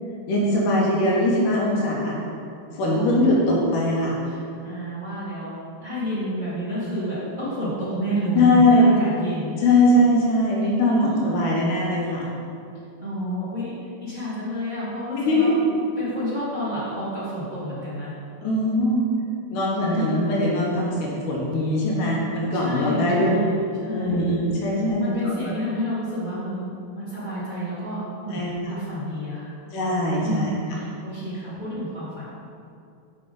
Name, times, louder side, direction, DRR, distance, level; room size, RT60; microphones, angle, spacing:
voice 1, 0.3-2.2 2.8-4.2 8.3-8.9 9.6-12.3 15.2-15.5 18.4-19.1 19.5-23.3 23.9-25.3 28.3-28.5 29.7-30.5, left 1 dB, 80° left, -4 dB, 2.6 m, -21 dB
voice 2, 2.9-3.4 4.2-5.5 5.8-9.6 10.9-11.4 13.0-15.6 16.0-18.1 19.8-20.3 22.5-24.3 25.0-28.0 28.2-29.5 30.2-32.3, equal, 60° right, -12 dB, 0.4 m, -30 dB
7.3 x 5.3 x 3.8 m, 2.5 s
omnidirectional pair, 3.7 m